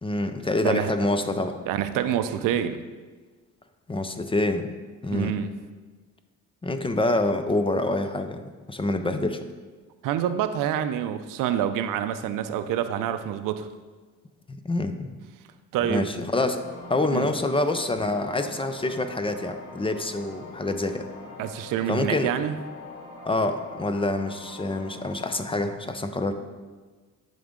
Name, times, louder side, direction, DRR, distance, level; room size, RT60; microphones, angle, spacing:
voice 1, 0.0-1.6 3.9-4.7 5.0-5.3 6.6-8.4 8.7-9.5 14.5-15.1 15.9-16.6 16.9-21.1 21.9-22.3 23.3-26.3, left 2 dB, 15° left, 8 dB, 0.5 m, -26 dB
voice 2, 1.7-2.8 5.1-5.5 10.0-13.7 15.7-16.1 17.1-17.3 21.4-22.6, right 10 dB, 90° right, 11 dB, 0.5 m, -27 dB
sound 1, 16.5-25.7, left 3 dB, 75° left, 1.5 m, -43 dB
10.5 x 3.9 x 3.7 m, 1.4 s
cardioid pair, 95°, 32 cm